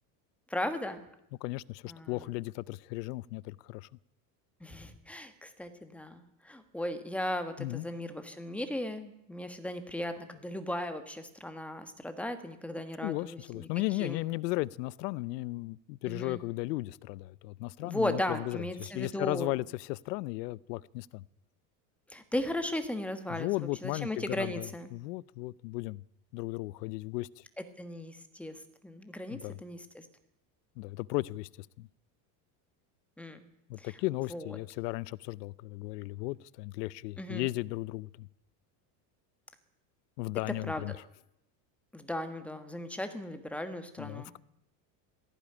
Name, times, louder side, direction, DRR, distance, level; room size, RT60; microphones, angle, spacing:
voice 1, 0.5-1.0 1.9-2.3 4.6-13.7 14.0-14.2 16.1-16.4 17.8-19.5 22.1-23.5 23.8-24.9 27.8-30.1 33.2-33.4 33.8-34.0 34.3-34.6 37.2-37.5 40.7-41.0 41.9-44.3, left 1 dB, 5° left, 1.4 m, -37 dB
voice 2, 1.4-3.9 7.6-7.9 13.0-21.2 23.3-26.0 26.3-27.3 29.3-29.6 30.8-31.9 33.7-38.3 40.2-40.9 44.0-44.4, left 20 dB, 90° left, 0.8 m, -35 dB
17.5 x 15.5 x 9.9 m
cardioid pair, 165°, 47 cm